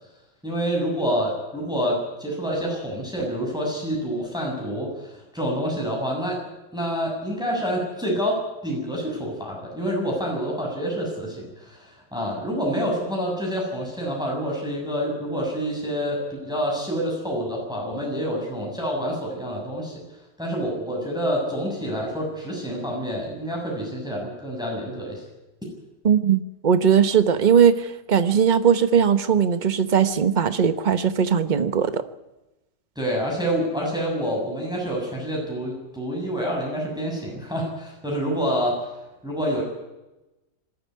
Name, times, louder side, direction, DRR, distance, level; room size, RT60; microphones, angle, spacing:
voice 1, 0.4-6.4 6.7-20.0 20.4-25.2 33.0-38.8 39.2-39.6, equal, ahead, -2 dB, 7.2 m, -27 dB
voice 2, 26.0-32.0, right 7 dB, 30° right, 11 dB, 0.9 m, -19 dB
21.0 x 14.0 x 9.5 m, 1.0 s
omnidirectional pair, 2.1 m